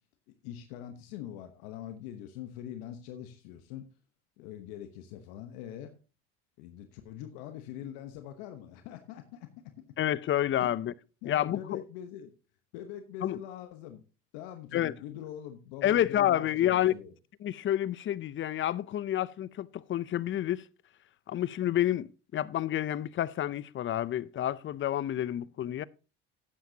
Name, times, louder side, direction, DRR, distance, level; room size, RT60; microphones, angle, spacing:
voice 1, 0.4-3.9 4.4-5.9 6.6-9.5 10.5-10.7 11.2-12.3 12.7-14.0 14.3-17.1, left 10 dB, 80° left, 1.1 m, -43 dB
voice 2, 10.0-10.9 11.3-11.8 13.2-13.4 14.7-14.9 15.8-16.9 17.4-20.7 21.3-25.8, left 12 dB, 40° left, 0.6 m, -29 dB
13.0 x 9.1 x 2.8 m
supercardioid pair, 85°, 31 cm